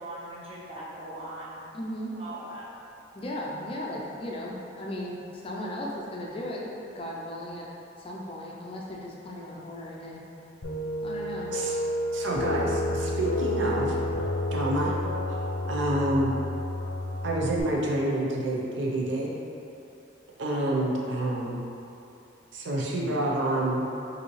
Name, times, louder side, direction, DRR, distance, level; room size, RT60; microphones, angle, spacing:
voice 1, 0.0-1.7 2.1-2.7, right 1 dB, 30° right, -8 dB, 0.9 m, -40 dB
voice 2, 1.7-2.2 3.1-7.7 8.0-10.3 11.0-11.5 12.4-12.6, left 1 dB, 30° left, -3 dB, 0.4 m, -36 dB
sound 1, 10.6-17.6, left 1 dB, 80° left, 0.6 m, -30 dB
voice 3, 12.1-14.0 14.5-14.9 15.6-16.4 17.2-19.3 20.4-21.6 22.5-23.9, right 1 dB, 75° right, -3 dB, 0.6 m, -28 dB
5.3 x 2.7 x 3.0 m, 2.7 s
head